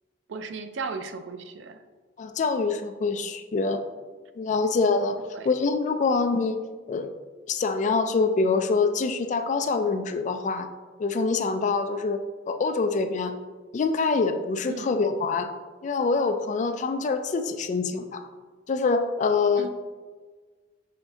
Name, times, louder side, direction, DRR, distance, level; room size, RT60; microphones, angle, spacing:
voice 1, 0.3-1.8 5.3-5.5 14.7-15.0 19.6-19.7, right 4 dB, 85° right, 9 dB, 0.4 m, -36 dB
voice 2, 2.2-3.8 4.4-5.2 5.4-6.6 6.9-7.1 7.5-10.7 11.0-12.2 12.5-13.4 13.7-15.5 15.8-18.2 18.7-19.7, left 4 dB, 40° left, 7 dB, 0.3 m, -25 dB
5.8 x 2.6 x 3.4 m, 1.4 s
head